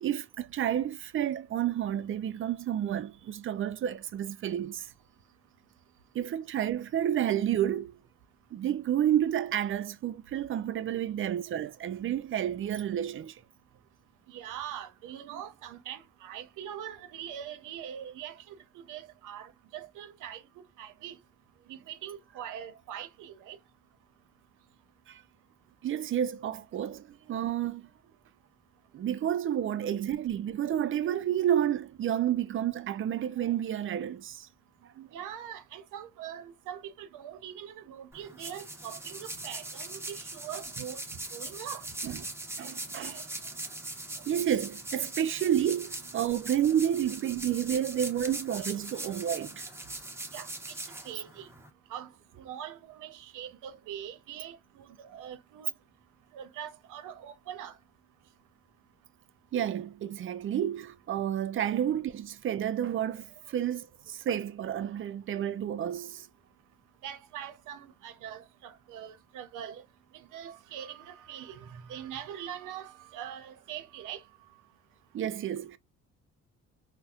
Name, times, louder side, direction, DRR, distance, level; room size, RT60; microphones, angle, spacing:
voice 1, 0.0-4.9 6.1-7.9 8.5-13.4 25.1-25.2 25.8-27.9 28.9-34.5 35.0-35.1 42.0-42.2 42.6-43.3 44.3-49.6 59.5-66.3 75.1-75.8, right 10 dB, 45° right, 0.4 m, -30 dB
voice 2, 14.3-20.4 20.8-21.2 21.7-23.6 35.1-41.0 41.3-41.9 50.3-50.8 51.0-51.5 51.9-52.1 52.4-55.7 56.3-57.8 67.0-69.8 70.1-74.2, right 10 dB, 85° right, 0.7 m, -42 dB
sound 1, 38.1-51.7, right 2 dB, 10° right, 0.7 m, -41 dB
4.1 x 2.1 x 2.3 m
cardioid pair, 90°, 30 cm